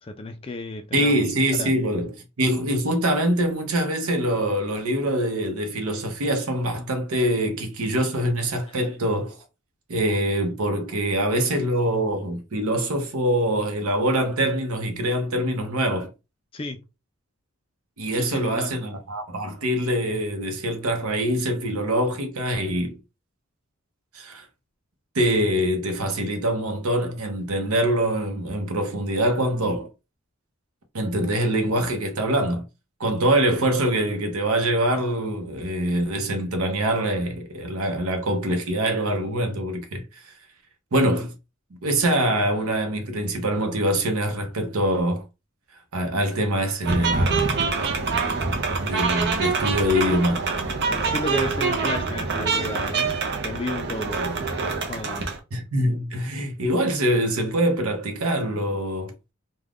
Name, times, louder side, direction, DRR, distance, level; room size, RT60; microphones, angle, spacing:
voice 1, 0.0-1.3 1.6-1.7 8.7-8.8 11.5-11.6 16.5-16.8 18.2-18.8 50.9-55.3, left 2 dB, 25° left, 0.3 m, -33 dB
voice 2, 0.9-9.3 9.9-16.1 18.0-23.0 24.1-24.5 25.1-29.9 30.9-32.6 33.0-40.3 40.9-41.3 41.8-45.2 45.9-47.5 48.8-50.5 55.5-59.1, right 1 dB, 80° right, 0.7 m, -24 dB
sound 1, 46.8-55.4, right 4 dB, 50° right, 0.5 m, -25 dB
2.4 x 2.2 x 3.4 m
head